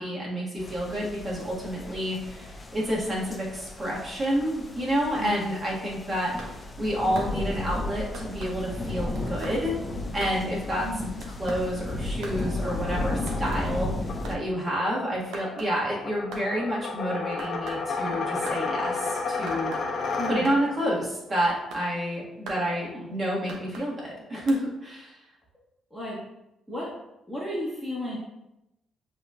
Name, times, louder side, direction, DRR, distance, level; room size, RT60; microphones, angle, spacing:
voice 1, 0.0-9.7 10.1-10.9 11.4-13.9 14.3-19.7 20.3-25.1, equal, 35° right, -5 dB, 1.7 m, -29 dB
sound 1, 0.6-14.4, left 1 dB, 20° left, 0.6 m, -34 dB
voice 2, 5.2-5.6 10.8-11.2 20.2-20.6 22.8-23.1 25.9-26.2 26.7-26.9 27.3-28.2, left 1 dB, 5° right, -6 dB, 1.3 m, -34 dB
sound 2, 6.4-6.5 7.2-7.3 8.1-8.5 9.2-9.6 10.2-10.4 11.2-11.7 12.2-12.4 13.3-13.7 14.2-14.4 15.3-15.7 16.3-16.5 17.4-17.8 18.5-18.6 19.5-19.9 20.4-20.6 21.4-21.9 22.5-22.7 23.5-23.9 24.5-24.6, right 3 dB, 85° right, 0.8 m, -40 dB
sound 3, 12.6-20.8, left 4 dB, 55° left, 0.7 m, -33 dB
7.5 x 2.9 x 2.4 m, 0.92 s
cardioid pair, 90°, 0 cm